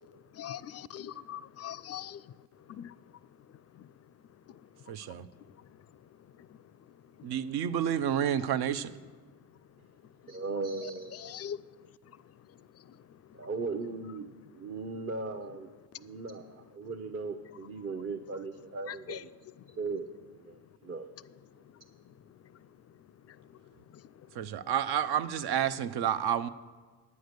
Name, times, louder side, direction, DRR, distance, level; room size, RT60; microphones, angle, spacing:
voice 1, 0.0-4.1 4.5-7.3 10.0-10.4 10.8-13.5 15.9-16.0 18.9-19.3 19.6-19.8 20.5-20.7 21.5-24.6, left 10 dB, 40° left, 0.4 m, -47 dB
voice 2, 4.9-5.3 7.2-9.0 24.3-26.5, right 9 dB, 65° right, 0.6 m, -30 dB
voice 3, 10.3-11.4 13.3-14.3 14.6-19.3 19.8-21.1, right 3 dB, 35° right, 0.7 m, -38 dB
9.5 x 7.9 x 6.6 m
supercardioid pair, 65°, 42 cm